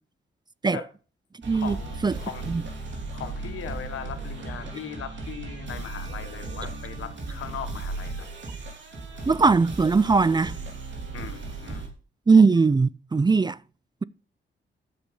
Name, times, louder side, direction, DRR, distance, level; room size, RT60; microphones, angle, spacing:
sound 1, 1.4-11.9, right 3 dB, 60° right, 3.1 m, -36 dB
voice 1, 1.5-2.5 2.9-8.3 11.1-11.8, left 8 dB, 85° left, 1.5 m, -39 dB
voice 2, 9.3-10.6 12.3-13.6, right 4 dB, 20° right, 0.4 m, -19 dB
9.8 x 7.1 x 5.3 m
cardioid pair, 70°, 21 cm